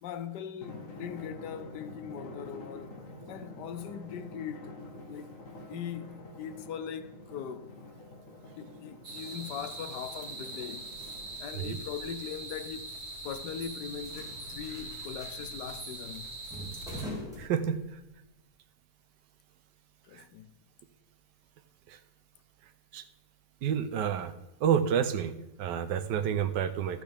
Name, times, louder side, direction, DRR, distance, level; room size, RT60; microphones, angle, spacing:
voice 1, 0.0-2.9 3.3-4.8 5.1-5.4 5.7-8.0 8.6-10.9 11.4-12.9 13.2-16.4 20.1-20.5, left 8 dB, 75° left, 1.3 m, -40 dB
Drum, 0.6-11.6, left 1 dB, 50° left, 1.7 m, -47 dB
sound 1, 9.0-17.0, right 2 dB, 60° right, 2.5 m, -42 dB
sound 2, 10.9-18.2, left 1 dB, ahead, 3.8 m, -46 dB
voice 2, 17.4-17.8 20.1-20.2 21.9-22.0 22.9-23.0 23.6-24.3 24.6-27.0, right 8 dB, 85° right, 1.4 m, -29 dB
14.0 x 8.5 x 3.4 m
omnidirectional pair, 1.8 m